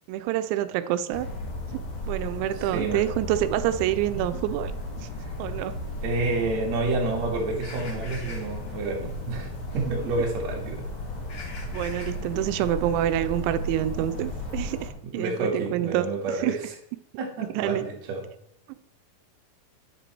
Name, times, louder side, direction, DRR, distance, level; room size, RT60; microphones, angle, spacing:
voice 1, 0.1-1.3 2.1-4.7 5.0-5.1 5.4-5.7 11.7-16.6 17.5-17.9, right 13 dB, 90° right, 10 dB, 2.9 m, -27 dB
sound 1, 1.1-14.9, left 1 dB, 65° left, 1.4 m, -35 dB
voice 2, 6.0-10.8 15.1-16.5 17.2-18.3, right 3 dB, 50° right, -2 dB, 2.5 m, -29 dB
10.5 x 6.8 x 4.5 m, 0.75 s
omnidirectional pair, 5.2 m